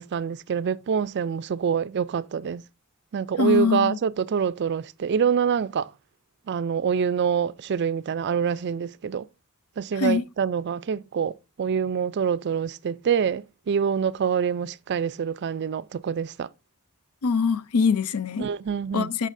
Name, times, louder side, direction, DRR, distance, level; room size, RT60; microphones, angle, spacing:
voice 1, 0.0-2.6 3.1-5.9 6.5-9.3 9.8-16.5 18.4-19.1, right 7 dB, 50° right, 0.4 m, -26 dB
voice 2, 3.4-4.0 10.0-10.2 17.2-18.5 18.9-19.3, left 5 dB, 75° left, 0.5 m, -23 dB
14.0 x 5.4 x 2.6 m
head